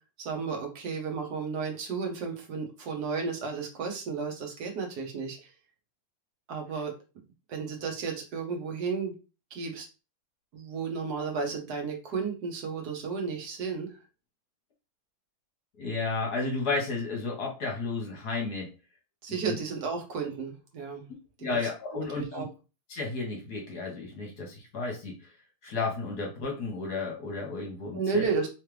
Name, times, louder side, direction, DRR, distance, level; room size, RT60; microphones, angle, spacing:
voice 1, 0.2-5.5 6.5-6.9 7.5-9.1 9.5-9.8 10.5-13.9 19.2-21.0 21.9-22.5 27.9-28.5, right 5 dB, 55° right, 2 dB, 1.3 m, -33 dB
voice 2, 15.8-18.7 19.3-19.6 21.4-22.4 22.9-25.1 25.6-28.4, left 3 dB, 55° left, 0 dB, 1.5 m, -32 dB
3.7 x 3.2 x 3.2 m, 0.31 s
omnidirectional pair, 2.4 m